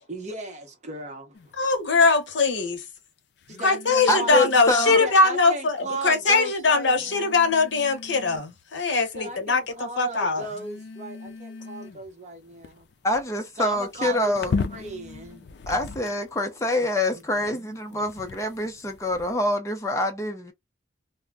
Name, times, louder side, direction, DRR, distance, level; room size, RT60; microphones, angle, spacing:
voice 1, 0.1-1.5 3.5-4.3 4.9-7.3 9.1-12.9 13.6-15.5 17.1-17.2, right 1 dB, 40° right, 0.8 m, -36 dB
sound 1, 1.3-1.6 3.4-5.2 6.1-6.2 6.9-8.6 9.1-9.7 10.4-16.4 17.2-19.3, left 4 dB, 60° left, 0.4 m, -38 dB
voice 2, 1.6-2.8 3.6-10.5, left 3 dB, 75° left, 0.8 m, -21 dB
voice 3, 4.1-5.0 13.0-14.6 15.7-20.5, left 1 dB, 15° left, 0.6 m, -25 dB
2.2 x 2.2 x 3.6 m
head